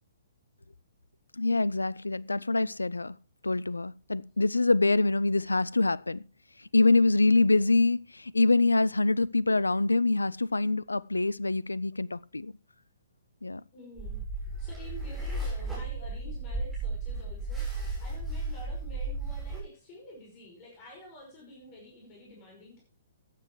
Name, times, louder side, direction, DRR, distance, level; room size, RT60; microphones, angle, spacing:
voice 1, 1.4-3.2 3.4-6.2 6.6-12.5 13.4-13.6, left 3 dB, 75° left, 0.5 m, -25 dB
voice 2, 13.7-14.2 14.6-22.8, left 2 dB, 30° left, 5.5 m, -49 dB
sound 1, 14.0-19.6, right 3 dB, 5° left, 7.5 m, -34 dB
15.0 x 9.6 x 3.2 m
figure-of-eight pair, 125°, 0 cm